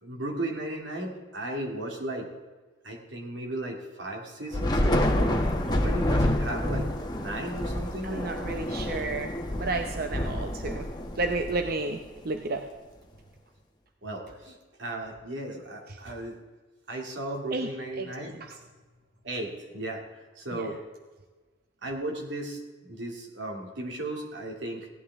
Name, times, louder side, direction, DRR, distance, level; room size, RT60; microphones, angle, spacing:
voice 1, 0.0-2.3 2.8-6.9 7.1-8.2 14.0-16.4 16.9-18.4 19.2-20.0 20.4-20.8 21.8-24.9, right 1 dB, 90° right, 1 dB, 2.6 m, -35 dB
Thunder / Rain, 4.5-12.1, left 1 dB, 25° left, 1.2 m, -28 dB
voice 2, 8.0-10.9 11.2-12.0 12.2-12.6 17.5-17.7 18.0-18.6 20.5-20.7, right 3 dB, 55° right, 5 dB, 0.8 m, -32 dB
16.5 x 11.0 x 3.6 m, 1.3 s
head